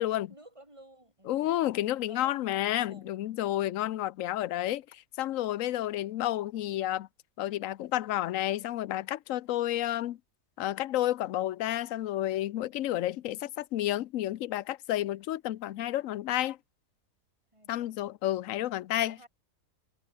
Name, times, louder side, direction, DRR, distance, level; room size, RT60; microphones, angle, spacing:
voice 1, 0.0-1.6 1.9-3.2 3.8-3.9 17.5-18.1 19.0-19.3, right 1 dB, 20° right, 7.5 m, -54 dB
voice 2, 1.3-7.1 7.4-10.2 10.6-16.6 17.7-19.2, left 13 dB, 65° left, 0.9 m, -31 dB
omnidirectional pair, 1.7 m